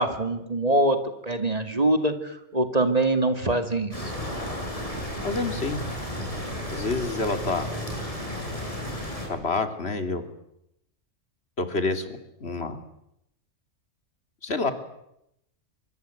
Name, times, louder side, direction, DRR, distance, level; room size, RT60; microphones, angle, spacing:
voice 1, 0.0-4.1, right 2 dB, 30° right, 8 dB, 2.5 m, -24 dB
sound 1, 3.9-9.3, equal, 25° left, 7.5 m, -33 dB
voice 2, 5.2-5.8 6.7-7.7 9.3-10.2 11.6-12.8 14.4-14.7, left 3 dB, 55° left, 8 dB, 3.1 m, -28 dB
25.0 x 24.0 x 9.3 m, 0.80 s
omnidirectional pair, 1.3 m